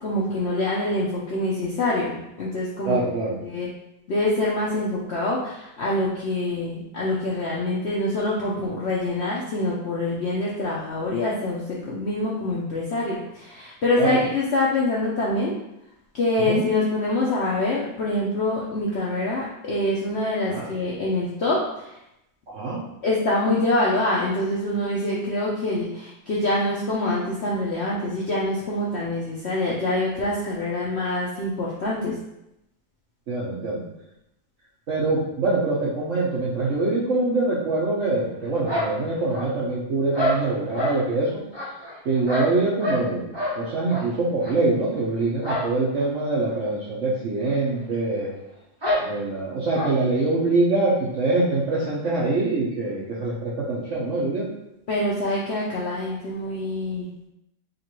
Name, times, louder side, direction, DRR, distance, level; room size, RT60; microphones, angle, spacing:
voice 1, 0.0-3.0 3.4-3.7 4.1-15.5 16.1-22.0 23.0-32.1 54.9-57.3, left 2 dB, 80° left, -5 dB, 0.5 m, -25 dB
voice 2, 2.8-3.4 14.0-14.2 16.4-16.6 20.5-20.7 22.5-22.8 33.3-33.9 34.9-41.3 42.0-43.3 43.6-48.3 49.0-54.4, right 3 dB, 60° right, -6 dB, 0.8 m, -24 dB
sound 1, 38.7-39.7 40.1-41.0 41.5-43.1 43.3-43.6 43.9-44.1 44.4-44.5 45.4-45.7 46.0-46.1 46.5-46.6 47.4-47.5 47.8-47.9 48.8-49.1 49.7-49.9, left 1 dB, 15° right, 1.0 m, -27 dB
5.1 x 2.4 x 3.0 m, 0.85 s
omnidirectional pair, 2.0 m